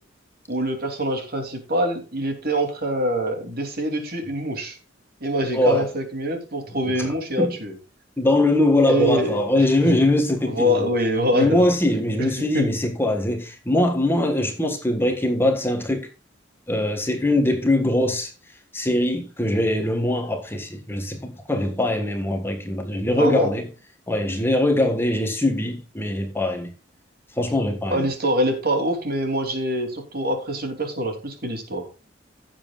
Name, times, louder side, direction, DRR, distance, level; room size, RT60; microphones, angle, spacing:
voice 1, 0.5-4.8 5.2-7.7 8.9-10.0 10.5-11.7 12.5-12.6 23.2-23.5 27.9-31.9, equal, 55° right, 3.0 m, -25 dB
voice 2, 5.5-5.9 7.0-7.1 7.4-7.5 8.2-10.9 11.3-16.1 16.7-18.3 18.7-23.7 24.1-26.7 27.4-28.1, left 1 dB, 10° left, 1.5 m, -22 dB
16.0 x 7.5 x 2.4 m
head